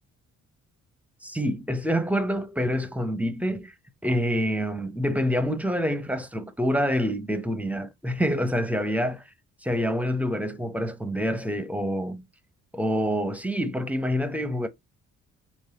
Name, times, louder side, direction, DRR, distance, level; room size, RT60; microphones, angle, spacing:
voice 1, 1.2-3.7 4.0-9.2 9.6-12.2 12.7-14.7, equal, 5° right, 0.7 m, -27 dB
4.0 x 2.9 x 4.1 m
cardioid pair, 90°, 30 cm